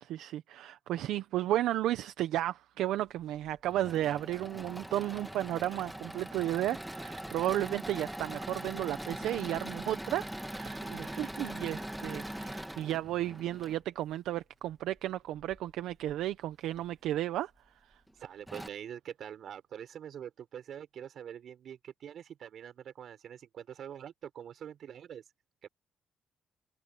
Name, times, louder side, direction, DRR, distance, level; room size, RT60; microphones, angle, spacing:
voice 1, 0.0-17.5 17.9-18.0, right 13 dB, 85° right, 0.8 m, -33 dB
Engine / Mechanisms, 3.5-13.8 15.4-16.1 16.7-16.8 17.1-17.2 18.1-18.2 18.5-18.7, right 1 dB, 5° right, 2.0 m, -41 dB
voice 2, 10.8-11.5 18.2-25.2 25.6-25.7, right 9 dB, 65° right, 4.2 m, -45 dB
cardioid pair, 90°, 0 cm